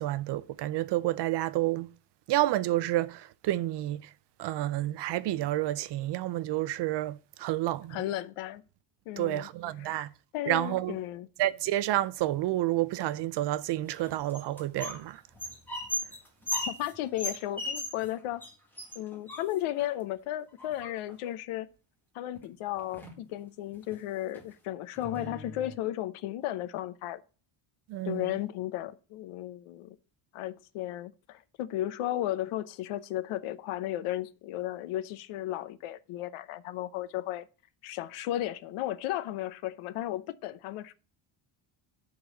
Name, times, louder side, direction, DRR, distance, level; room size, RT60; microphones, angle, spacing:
voice 1, 0.0-1.9 2.3-4.1 4.4-8.0 9.2-10.1 10.5-11.0 11.4-15.2 27.9-28.3, right 15 dB, 55° right, 0.6 m, -29 dB
voice 2, 7.9-8.6 9.1-9.5 9.8-10.0 10.3-11.3 16.7-18.4 18.9-21.7 22.1-27.2 28.0-30.0 30.3-37.5 37.8-40.9, left 13 dB, 85° left, 0.8 m, -34 dB
sound 1, 13.9-15.0 15.3-18.1 18.4-18.5 18.8-19.9 20.6-21.3 22.4-22.5 22.8-23.2 23.7-24.0 24.3-24.5 25.0-25.8, left 1 dB, 5° left, 1.6 m, -37 dB
9.6 x 4.0 x 6.9 m
cardioid pair, 170°, 50 cm